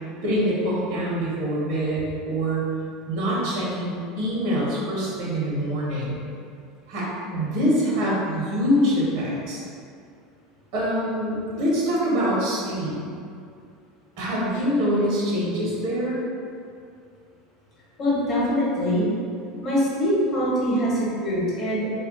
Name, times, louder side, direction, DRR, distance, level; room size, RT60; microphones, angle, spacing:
voice 1, 0.2-2.6 3.1-6.2 6.9-9.6 10.7-13.0 14.2-16.2, equal, 65° right, -6 dB, 0.9 m, -24 dB
voice 2, 18.0-19.1 19.6-21.9, equal, 35° left, -6 dB, 0.9 m, -23 dB
2.4 x 2.1 x 3.6 m, 2.3 s
supercardioid pair, 125°, 0 cm